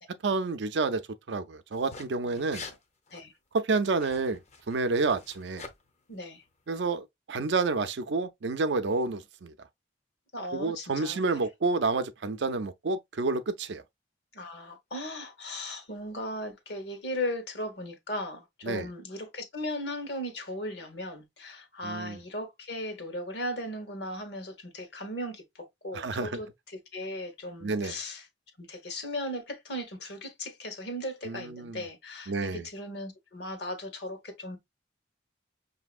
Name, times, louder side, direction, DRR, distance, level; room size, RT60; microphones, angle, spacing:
voice 1, 0.2-1.0 1.3-2.6 3.5-4.4 4.7-5.7 6.7-9.5 10.5-13.8 18.6-18.9 21.8-22.2 25.9-26.3 27.6-28.0 31.2-31.8 32.3-32.7, right 3 dB, 75° right, 0.5 m, -29 dB
sound 1, 1.7-2.1 2.3-2.8 3.1-3.2 3.9-5.7, left 4 dB, 35° left, 0.7 m, -45 dB
voice 2, 2.2-2.8 3.1-3.3 6.1-6.4 10.3-11.2 14.3-28.3 28.6-34.6, left 1 dB, 65° left, 1.2 m, -37 dB
6.0 x 2.7 x 2.4 m
head